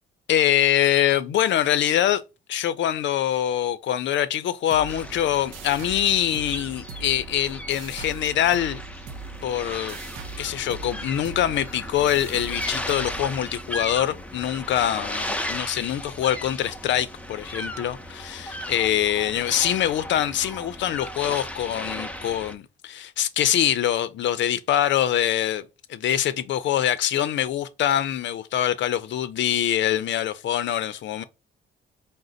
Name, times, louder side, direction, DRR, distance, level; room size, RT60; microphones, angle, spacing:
voice 1, 0.3-2.2 2.5-8.8 9.4-10.0 10.4-31.2, left 11 dB, 70° left, 0.6 m, -24 dB
sound 1, 4.7-13.9, right 5 dB, 80° right, 0.6 m, -41 dB
sound 2, 4.9-22.5, left 1 dB, 5° left, 0.6 m, -36 dB
5.0 x 2.1 x 3.8 m
cardioid pair, 90°, 20 cm